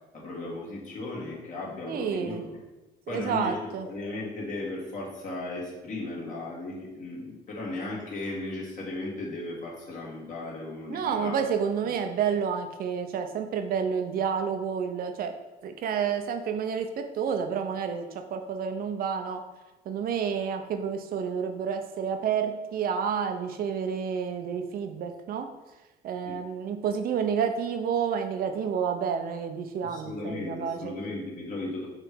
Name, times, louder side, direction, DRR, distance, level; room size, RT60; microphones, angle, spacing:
voice 1, 0.1-2.6 3.1-11.4 11.8-11.9 26.2-26.4 29.8-31.9, left 2 dB, 50° left, -4 dB, 2.1 m, -36 dB
voice 2, 1.9-2.4 3.1-3.9 10.9-15.3 15.6-19.4 19.9-25.5 26.0-30.9, right 7 dB, 60° right, 6 dB, 0.7 m, -29 dB
6.0 x 3.3 x 5.1 m, 1.1 s
cardioid pair, 110°, 17 cm